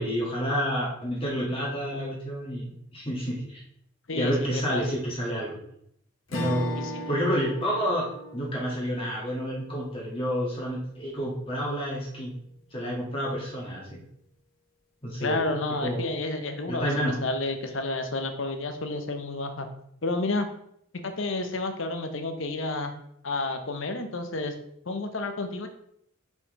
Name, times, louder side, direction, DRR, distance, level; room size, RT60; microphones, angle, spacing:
voice 1, 0.0-3.6 4.1-5.6 6.3-8.1 8.3-12.3 12.7-14.0 15.0-15.4 15.8-16.0 16.7-17.2, equal, 25° left, -4 dB, 1.7 m, -29 dB
voice 2, 4.1-4.9 6.8-7.0 15.2-19.7 20.0-20.5 21.0-22.9 23.2-24.5 24.9-25.7, left 2 dB, 70° left, 7 dB, 0.9 m, -30 dB
Strum, 6.3-10.9, left 1 dB, 90° left, 1.2 m, -37 dB
6.2 x 5.6 x 3.1 m, 0.70 s
head